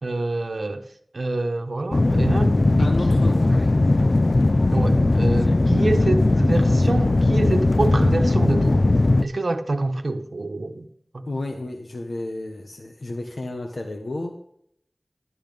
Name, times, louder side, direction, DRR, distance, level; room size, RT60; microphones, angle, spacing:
voice 1, 0.0-0.8 1.1-2.9 4.7-8.8 9.2-10.9 11.1-11.2, right 2 dB, 90° right, 1.1 m, -26 dB
sound 1, 1.9-9.2, left 2 dB, 60° left, 0.4 m, -18 dB
voice 2, 2.8-3.6 11.2-14.3, left 2 dB, 85° left, 1.4 m, -32 dB
11.5 x 10.5 x 5.3 m
wide cardioid pair, 60°, 0 cm